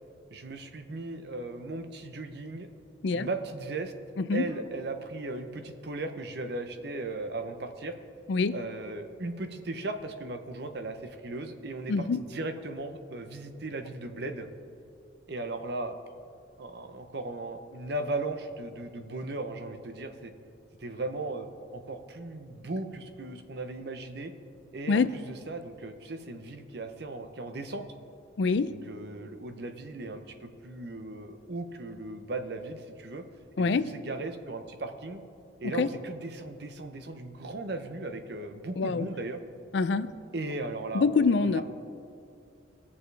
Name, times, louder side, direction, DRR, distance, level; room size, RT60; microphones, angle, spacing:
voice 1, 0.3-2.7 3.1-3.9 4.3-8.0 8.5-14.5 15.3-16.0 16.6-20.3 20.8-21.5 21.7-24.3 24.7-27.9 28.7-33.2 33.6-35.2 35.6-39.4 40.3-41.0 41.4-41.6, right 2 dB, 60° right, 7 dB, 0.8 m, -37 dB
voice 2, 11.9-12.2 24.9-25.1 28.4-28.8 33.6-33.9 35.8-35.9 38.8-39.1 39.7-40.2 40.9-41.6, left 4 dB, 65° left, 14 dB, 0.4 m, -25 dB
20.5 x 6.9 x 3.3 m, 2.5 s
head